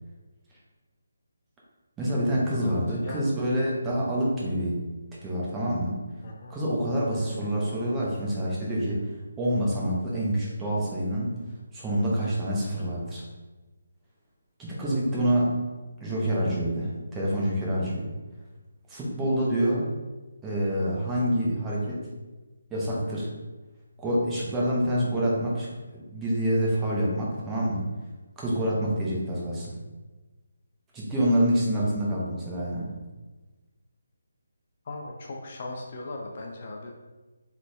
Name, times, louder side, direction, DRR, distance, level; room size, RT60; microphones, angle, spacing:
voice 1, 2.0-4.8 5.2-6.0 6.5-11.4 11.7-13.2 14.6-15.6 16.0-18.1 18.9-19.9 20.4-22.0 22.7-23.3 24.0-27.8 28.4-29.7 30.9-32.9, equal, 10° right, -6 dB, 0.7 m, -27 dB
voice 2, 2.6-3.2 6.2-6.6 7.2-7.5 34.8-36.9, left 2 dB, 40° left, 0 dB, 0.4 m, -39 dB
3.8 x 3.2 x 2.2 m, 1.2 s
figure-of-eight pair, 150°, 0 cm